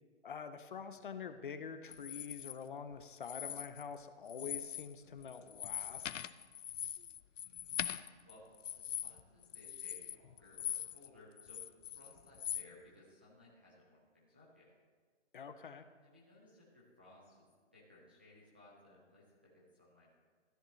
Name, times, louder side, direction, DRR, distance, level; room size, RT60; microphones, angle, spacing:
voice 1, 0.2-6.2 15.3-15.8, left 6 dB, 45° left, 9 dB, 0.6 m, -46 dB
sound 1, 1.9-2.5 3.2-4.0 4.3-4.9 5.2-11.1 11.4-12.7, left 10 dB, 90° left, 0.6 m, -42 dB
voice 2, 7.4-7.9 8.3-14.7 16.0-20.1, left 1 dB, 10° right, -7 dB, 0.4 m, -61 dB
14.0 x 10.0 x 3.1 m, 1.5 s
hypercardioid pair, 165°, 36 cm